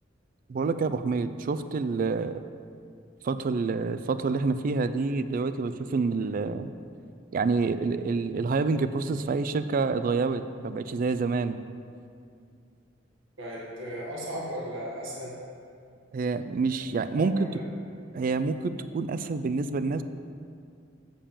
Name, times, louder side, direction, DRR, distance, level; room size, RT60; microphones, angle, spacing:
voice 1, 0.5-2.4 3.2-6.7 7.3-11.6 16.1-17.3 18.1-20.0, right 4 dB, 45° right, 12 dB, 0.3 m, -27 dB
voice 2, 13.4-15.4 17.2-17.7, equal, 80° right, -5 dB, 1.8 m, -36 dB
7.2 x 5.3 x 6.8 m, 2.3 s
head